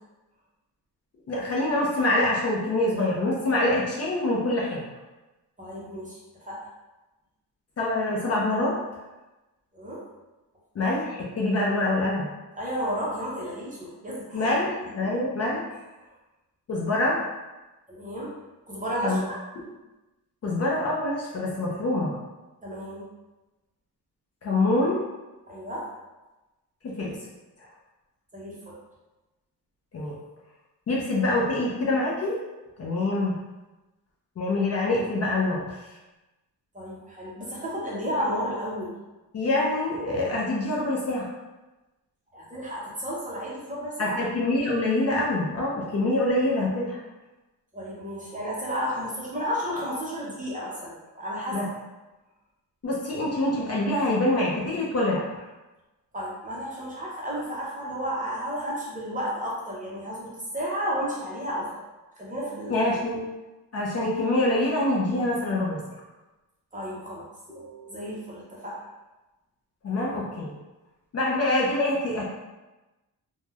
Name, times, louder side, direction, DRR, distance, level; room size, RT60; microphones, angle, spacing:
voice 1, 1.3-4.9 7.8-8.8 10.8-12.3 14.3-15.6 16.7-17.2 19.0-19.2 19.6-19.7 20.4-22.2 24.4-25.0 27.0-27.2 29.9-30.2 30.9-32.4 32.8-33.4 34.4-35.8 39.3-41.3 44.0-47.0 51.5-51.6 52.8-55.4 62.7-63.2 63.7-65.8 69.8-70.5 71.1-72.2, left 2 dB, 40° left, -4 dB, 0.4 m, -25 dB
voice 2, 5.6-6.2 6.4-6.6 9.7-10.0 12.6-14.5 15.0-15.1 17.9-18.3 18.7-19.4 22.6-23.0 25.5-25.9 28.3-28.7 36.7-38.9 42.3-44.1 47.7-51.6 56.1-61.7 62.2-62.7 66.7-68.9, equal, 20° right, -6 dB, 0.5 m, -32 dB
3.0 x 2.0 x 2.2 m, 1.1 s
wide cardioid pair, 165°, 40 cm